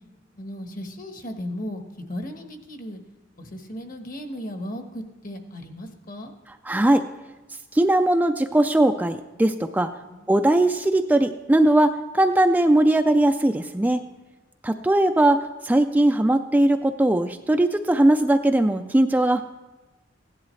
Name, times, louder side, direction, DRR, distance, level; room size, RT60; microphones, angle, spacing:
voice 1, 0.3-3.0 3.4-6.3 10.1-10.3, equal, 50° left, 6 dB, 1.2 m, -36 dB
voice 2, 6.7-7.0 7.7-9.9 10.3-14.0 14.6-19.4, right 1 dB, 10° right, 7 dB, 0.3 m, -20 dB
16.0 x 10.5 x 3.2 m, 1.1 s
head